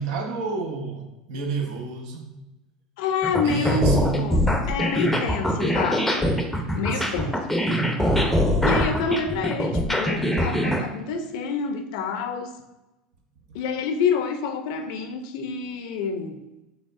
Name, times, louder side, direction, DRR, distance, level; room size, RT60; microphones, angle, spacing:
voice 1, 0.0-2.3 3.4-4.2 6.9-7.3, right 4 dB, 70° right, 3 dB, 0.8 m, -29 dB
voice 2, 3.0-4.4 4.7-6.4 6.7-7.6 8.6-12.6 13.5-16.4, left 5 dB, 65° left, 6 dB, 0.5 m, -27 dB
sound 1, 3.2-10.8, equal, 5° left, 0.6 m, -23 dB
6.2 x 3.4 x 2.5 m, 1.0 s
hypercardioid pair, 80°, 4 cm